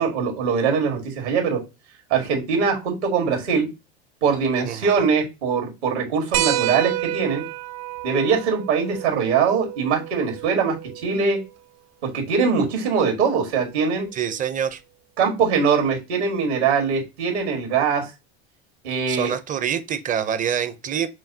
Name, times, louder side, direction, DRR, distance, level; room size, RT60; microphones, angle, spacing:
voice 1, 0.0-1.6 2.1-3.7 4.2-7.4 8.0-10.8 11.0-11.4 12.0-14.1 15.2-18.1 18.8-19.3, right 5 dB, 85° right, 1.7 m, -22 dB
voice 2, 4.6-5.0 14.1-14.8 19.1-21.1, right 8 dB, 25° right, 0.5 m, -26 dB
sound 1, 6.3-11.4 12.9-13.0 14.7-14.8, right 14 dB, 65° right, 0.6 m, -29 dB
5.7 x 2.3 x 2.7 m
hypercardioid pair, 95°, 33 cm